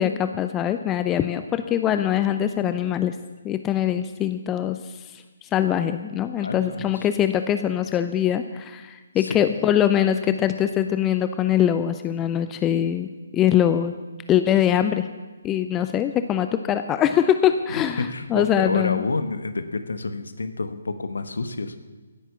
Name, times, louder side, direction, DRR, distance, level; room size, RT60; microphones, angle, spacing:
voice 1, 0.0-3.1 3.4-4.8 5.1-13.9 14.3-15.1 15.4-19.0, left 10 dB, 15° left, 10 dB, 0.5 m, -23 dB
voice 2, 6.4-7.1 9.2-9.5 17.7-21.7, left 3 dB, 65° left, 10 dB, 1.2 m, -29 dB
16.0 x 9.0 x 6.8 m, 1.3 s
figure-of-eight pair, 140°, 0 cm